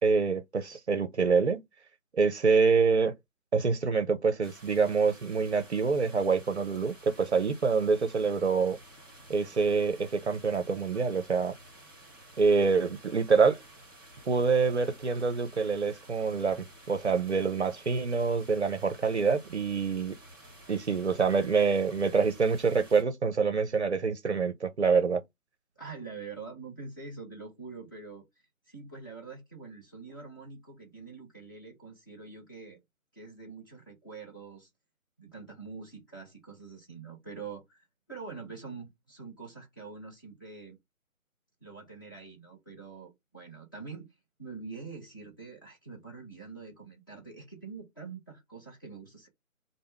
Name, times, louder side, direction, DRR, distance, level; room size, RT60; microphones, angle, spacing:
voice 1, 0.0-1.6 2.1-3.1 3.5-8.8 9.3-11.5 12.4-13.6 14.3-20.1 20.7-25.2, right 5 dB, 55° right, 0.6 m, -26 dB
sound 1, 4.4-23.0, right 1 dB, 15° right, 0.9 m, -53 dB
voice 2, 25.8-28.3 28.7-32.8 33.1-34.7 35.2-40.8 41.6-44.1 44.4-49.3, right 4 dB, 15° left, 0.7 m, -45 dB
3.4 x 2.0 x 3.3 m
figure-of-eight pair, 150°, 42 cm